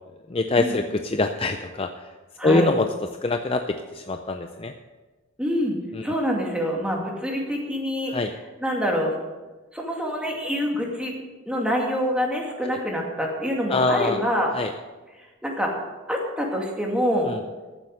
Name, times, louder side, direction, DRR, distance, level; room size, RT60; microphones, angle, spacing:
voice 1, 0.3-1.9 2.4-2.9 3.2-4.7 8.1-8.3 13.7-14.2 14.5-14.7 17.3-17.4, left 2 dB, 25° left, 6 dB, 0.5 m, -24 dB
voice 2, 2.4-2.7 5.4-5.8 6.0-8.3 8.6-9.1 9.7-11.1 11.5-14.5 15.4-15.7 16.1-17.3, equal, 5° right, -1 dB, 2.3 m, -26 dB
14.0 x 7.6 x 6.5 m, 1.2 s
head